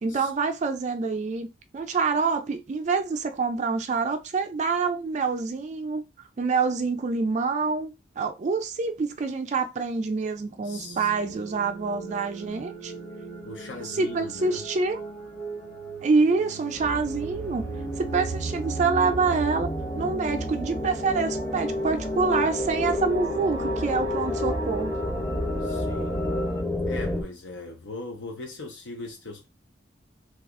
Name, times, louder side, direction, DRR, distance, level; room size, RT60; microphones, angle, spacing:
voice 1, 0.0-1.5 1.7-6.0 6.4-12.9 13.8-15.0 16.0-17.6 18.0-19.7 20.0-24.9, right 4 dB, 40° right, 0.4 m, -26 dB
voice 2, 10.6-11.4 13.4-14.7 25.6-26.1 26.8-29.5, left 2 dB, 80° left, 0.6 m, -40 dB
sound 1, 10.6-26.6, right 1 dB, 40° left, 1.1 m, -36 dB
sound 2, 16.7-27.2, left 1 dB, 5° left, 0.6 m, -31 dB
2.8 x 2.3 x 3.5 m
head